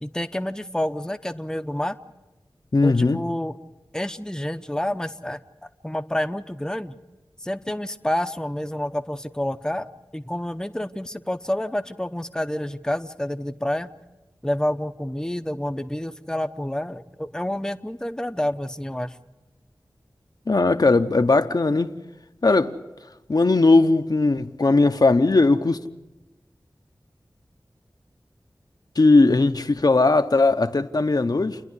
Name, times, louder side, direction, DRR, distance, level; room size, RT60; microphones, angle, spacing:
voice 1, 0.0-2.0 2.8-3.5 3.9-5.4 5.8-6.9 7.4-9.9 10.1-13.9 14.4-19.2, left 1 dB, 10° left, 0.8 m, -28 dB
voice 2, 2.7-3.2 20.5-21.9 22.4-22.7 23.3-25.8 29.0-31.6, left 3 dB, 55° left, 0.8 m, -18 dB
29.0 x 10.5 x 9.7 m
wide cardioid pair, 55°, 8 cm